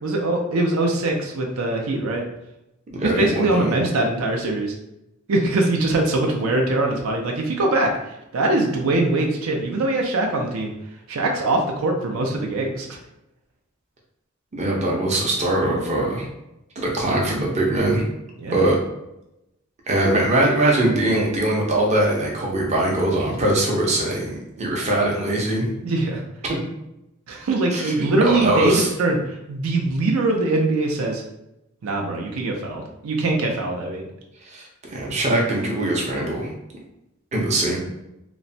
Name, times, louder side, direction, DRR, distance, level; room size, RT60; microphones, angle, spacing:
voice 1, 0.0-2.2 3.0-4.7 5.3-10.7 11.1-12.9 18.4-18.7 25.8-26.2 27.3-31.2 31.8-34.1, right 2 dB, 85° right, 1 dB, 0.5 m, -22 dB
voice 2, 3.0-3.7 14.5-16.3 16.8-18.0 18.5-18.8 19.9-25.7 26.4-26.7 27.7-28.9 34.5-36.5 37.3-37.8, right 1 dB, 35° right, -2 dB, 0.5 m, -22 dB
3.0 x 2.1 x 2.6 m, 0.87 s
head